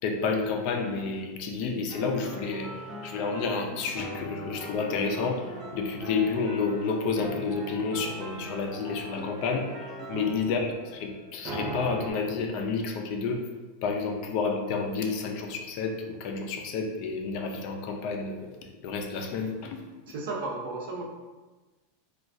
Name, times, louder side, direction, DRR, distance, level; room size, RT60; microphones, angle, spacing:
voice 1, 0.0-2.7 3.0-13.4 13.8-18.5 18.8-19.8, left 4 dB, 40° left, 3 dB, 0.3 m, -30 dB
sound 1, 1.9-12.1, right 1 dB, 25° right, 0.5 m, -40 dB
voice 2, 20.1-21.0, right 3 dB, 65° right, -1 dB, 0.6 m, -34 dB
3.0 x 2.2 x 2.6 m, 1.2 s
supercardioid pair, 170°, 0 cm